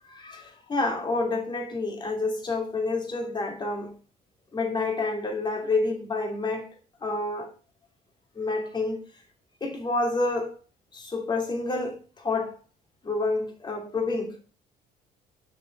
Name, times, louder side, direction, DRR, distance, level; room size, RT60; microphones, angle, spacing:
voice 1, 0.1-3.9 4.5-6.7 7.0-7.5 8.4-9.0 9.6-10.5 10.9-12.6 13.0-14.4, left 3 dB, 25° left, 2.9 m, -28 dB
6.9 x 6.3 x 6.7 m
cardioid pair, 110°, 17 cm